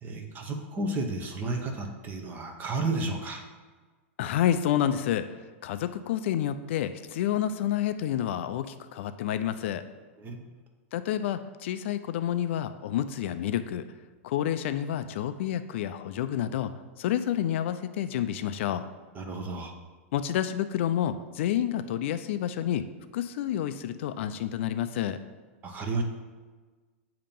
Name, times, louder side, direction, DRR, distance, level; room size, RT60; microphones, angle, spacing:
voice 1, 0.0-3.4 10.2-10.4 19.1-19.7 25.6-26.0, right 2 dB, 25° right, 3 dB, 0.9 m, -32 dB
voice 2, 4.2-5.3 5.6-9.8 10.9-13.9 14.2-16.7 17.0-18.9 20.1-22.8 23.1-25.2, left 10 dB, 60° left, 11 dB, 0.4 m, -29 dB
8.6 x 2.9 x 5.2 m, 1.4 s
hypercardioid pair, 130°, 7 cm